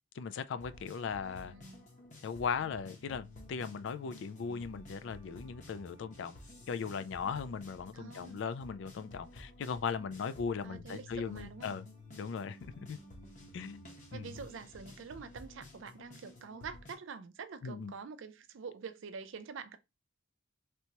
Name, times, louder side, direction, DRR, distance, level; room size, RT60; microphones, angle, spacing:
voice 1, 0.2-1.5 2.2-6.4 6.7-11.8 12.1-13.0 13.5-14.3 17.6-17.9, left 6 dB, 60° left, 0.3 m, -38 dB
sound 1, 0.6-16.9, left 1 dB, 35° left, 0.9 m, -53 dB
voice 2, 1.4-1.9 7.9-8.4 10.6-11.8 13.6-13.7 14.1-19.8, right 5 dB, 65° right, 0.4 m, -46 dB
3.3 x 2.8 x 2.9 m
head